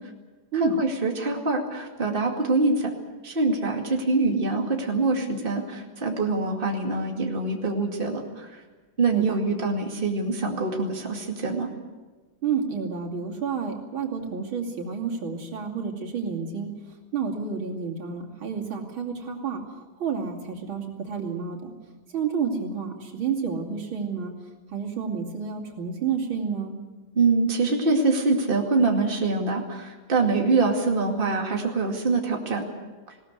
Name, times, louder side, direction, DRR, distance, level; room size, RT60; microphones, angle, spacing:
voice 1, 0.5-2.9 3.2-8.5 9.0-11.7 27.2-32.6, right 3 dB, 25° right, 1 dB, 2.4 m, -24 dB
voice 2, 12.4-16.7 17.1-21.7 22.1-24.3 24.7-26.8, right 6 dB, 80° right, -1 dB, 3.5 m, -30 dB
20.0 x 18.5 x 8.1 m, 1.3 s
omnidirectional pair, 2.2 m